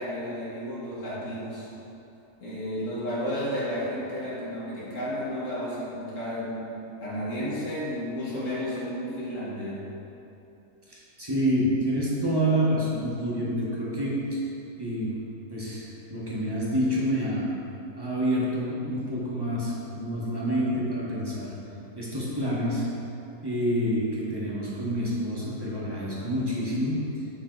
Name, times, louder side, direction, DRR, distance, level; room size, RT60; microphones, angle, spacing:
voice 1, 0.0-1.7 2.4-9.9, equal, 55° left, -8 dB, 2.3 m, -32 dB
voice 2, 10.9-14.4 14.8-17.5 18.0-21.6 22.0-23.0 23.4-27.1, equal, 15° right, -6 dB, 1.3 m, -28 dB
11.5 x 3.9 x 3.9 m, 2.9 s
omnidirectional pair, 1.6 m